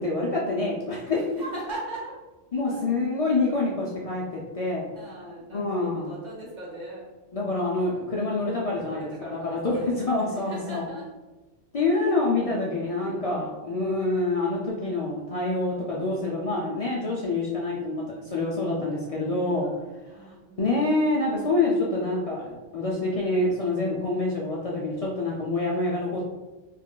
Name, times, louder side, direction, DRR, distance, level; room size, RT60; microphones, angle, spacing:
voice 1, 0.0-1.5 2.5-4.9 5.5-6.1 7.3-10.9 11.7-19.7 20.1-26.2, left 2 dB, 65° left, -4 dB, 0.3 m, -26 dB
voice 2, 1.1-2.1 2.6-2.8 3.1-3.3 4.9-7.0 8.9-11.1 11.7-12.2 12.8-14.0 19.5-21.0, right 1 dB, 40° right, -6 dB, 1.1 m, -40 dB
2.5 x 2.2 x 3.6 m, 1.2 s
omnidirectional pair, 1.2 m